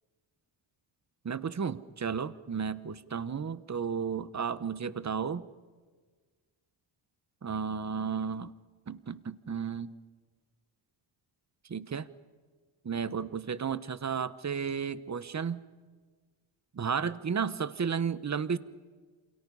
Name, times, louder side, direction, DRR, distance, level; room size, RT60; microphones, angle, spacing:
voice 1, 1.2-5.5 7.4-8.5 8.9-9.9 11.7-12.1 12.8-15.6 16.7-18.6, right 6 dB, 35° right, 15 dB, 1.1 m, -33 dB
28.0 x 27.5 x 5.5 m, 1.5 s
cardioid pair, 95°, 49 cm